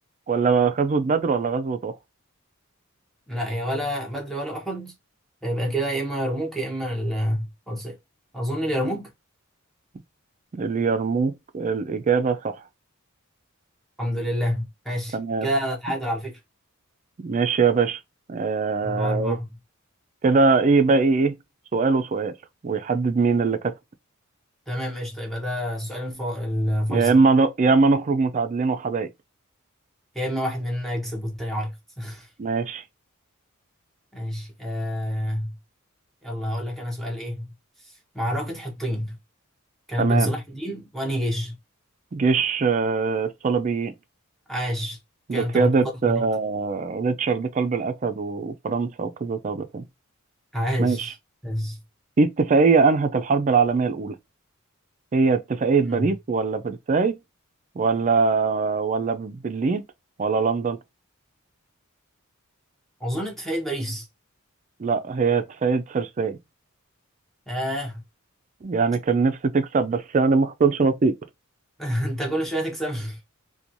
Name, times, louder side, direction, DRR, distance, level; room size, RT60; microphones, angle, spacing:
voice 1, 0.3-2.0 10.5-12.5 15.1-15.5 17.2-18.0 18.3-19.4 20.2-21.4 21.7-22.3 22.6-23.7 26.9-29.1 32.4-32.8 40.0-40.3 42.1-43.9 45.3-49.8 50.8-51.1 52.2-54.2 55.1-57.2 57.8-59.9 60.2-60.8 64.8-66.4 68.6-71.2, right 4 dB, 35° right, 0.4 m, -22 dB
voice 2, 3.3-4.9 5.4-8.0 8.3-9.1 14.0-16.4 18.8-19.5 24.7-27.1 30.1-32.3 34.1-35.6 36.2-37.5 38.1-39.2 39.9-41.6 44.5-45.0 45.3-46.2 50.5-51.1 51.4-51.8 55.9-56.1 63.0-64.1 67.5-68.0 71.8-73.2, equal, ahead, 0.6 m, -28 dB
2.9 x 2.3 x 2.5 m
head